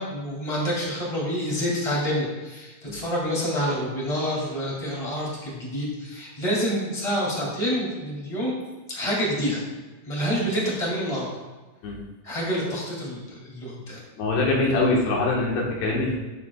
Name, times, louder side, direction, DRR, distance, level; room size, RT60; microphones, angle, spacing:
voice 1, 0.0-8.5 8.9-9.6 10.0-11.3 12.2-14.0, equal, 20° left, -5 dB, 0.9 m, -27 dB
voice 2, 14.2-16.2, left 2 dB, 75° left, -3 dB, 3.5 m, -23 dB
15.0 x 5.2 x 2.4 m, 1.2 s
omnidirectional pair, 5.1 m